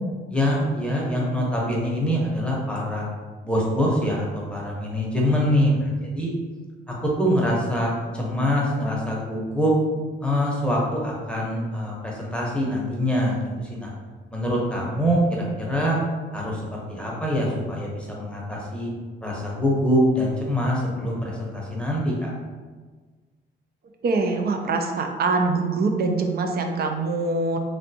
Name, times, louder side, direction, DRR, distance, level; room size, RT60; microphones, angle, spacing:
voice 1, 0.3-3.1 3.4-6.3 6.9-9.7 10.2-13.9 14.3-16.0 16.3-18.9 19.2-22.3, equal, 5° left, -3 dB, 0.8 m, -24 dB
voice 2, 24.0-27.6, right 3 dB, 50° right, 4 dB, 0.5 m, -24 dB
3.2 x 2.5 x 2.7 m, 1.4 s
cardioid pair, 90°, 20 cm